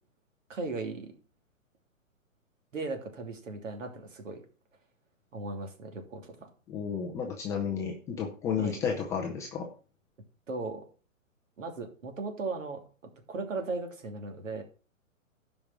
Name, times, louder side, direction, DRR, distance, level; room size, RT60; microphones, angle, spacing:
voice 1, 0.5-1.1 2.7-4.4 5.3-6.5 8.6-8.8 10.5-10.8 11.6-12.8 13.3-14.6, right 3 dB, 65° right, 5 dB, 3.0 m, -37 dB
voice 2, 6.7-9.7, left 7 dB, 5° left, 0 dB, 0.5 m, -32 dB
12.0 x 5.3 x 6.1 m, 0.38 s
hypercardioid pair, 130°, 41 cm